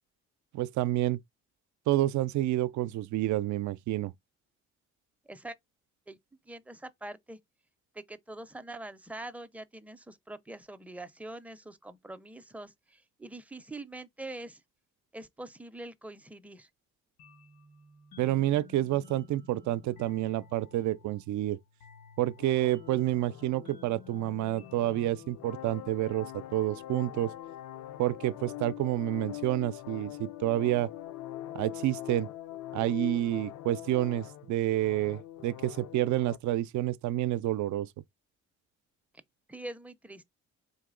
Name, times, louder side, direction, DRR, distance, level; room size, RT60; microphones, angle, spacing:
voice 1, 0.5-1.2 1.9-4.1 18.2-21.6 22.2-27.3 28.0-30.9 31.5-32.3 32.7-37.9, right 14 dB, 70° right, 0.5 m, -29 dB
voice 2, 5.2-5.5 6.1-6.2 6.5-7.4 7.9-14.6 15.1-16.7 39.5-40.2, right 2 dB, 5° right, 0.5 m, -44 dB
sound 1, 17.2-26.6, left 6 dB, 90° left, 1.7 m, -55 dB
sound 2, 22.4-36.4, left 13 dB, 70° left, 0.5 m, -43 dB
4.1 x 2.9 x 3.7 m
cardioid pair, 90°, 30 cm